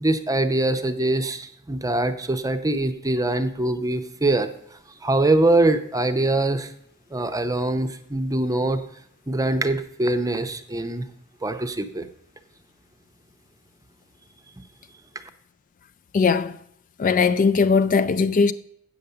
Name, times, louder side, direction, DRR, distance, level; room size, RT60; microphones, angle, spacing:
voice 1, 0.0-4.5 5.0-6.7 7.1-8.8 9.3-11.0 11.4-12.1, right 2 dB, 15° right, 0.7 m, -23 dB
voice 2, 16.1-16.6 17.0-18.5, left 5 dB, 40° left, 0.3 m, -19 dB
8.5 x 7.0 x 6.7 m
head